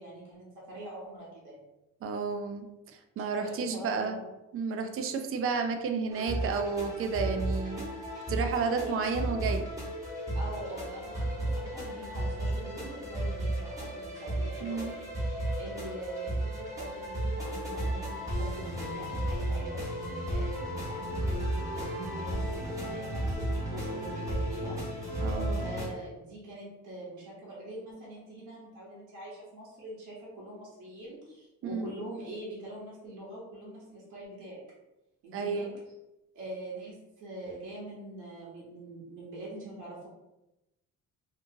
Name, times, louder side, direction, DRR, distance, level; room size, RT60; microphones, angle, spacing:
voice 1, 0.0-1.6 3.2-4.2 8.8-8.9 10.3-24.8 25.5-34.6 35.2-35.7 36.3-40.1, right 1 dB, 90° right, -5 dB, 1.0 m, -44 dB
voice 2, 2.0-2.7 2.9-4.2 4.5-7.9 8.3-9.6 14.6-14.9 25.2-25.7 31.7-31.9 35.3-35.7, right 5 dB, 45° right, 5 dB, 0.4 m, -31 dB
sound 1, 6.1-25.9, right 1 dB, 10° right, 1.2 m, -34 dB
2.7 x 2.5 x 2.6 m, 0.96 s
cardioid pair, 90°, 30 cm